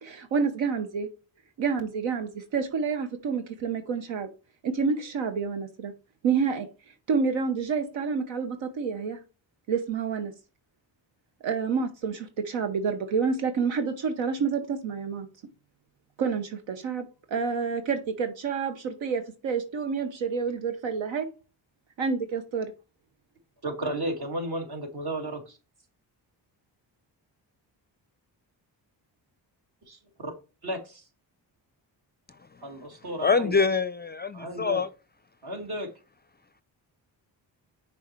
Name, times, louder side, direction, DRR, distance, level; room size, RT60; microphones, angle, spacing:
voice 1, 0.0-1.1 1.6-4.3 4.6-5.9 6.2-6.7 7.1-9.2 9.7-10.3 11.4-15.3 16.2-21.3 22.0-22.7, right 5 dB, 80° right, 1.0 m, -28 dB
voice 2, 23.6-25.6 29.9-30.0 30.2-30.3 30.6-31.0 32.6-33.6 34.3-34.8 35.4-35.9, right 1 dB, 55° right, 2.2 m, -33 dB
voice 3, 33.2-34.9, left 5 dB, 25° left, 0.4 m, -25 dB
6.3 x 3.9 x 4.4 m
cardioid pair, 65°, 46 cm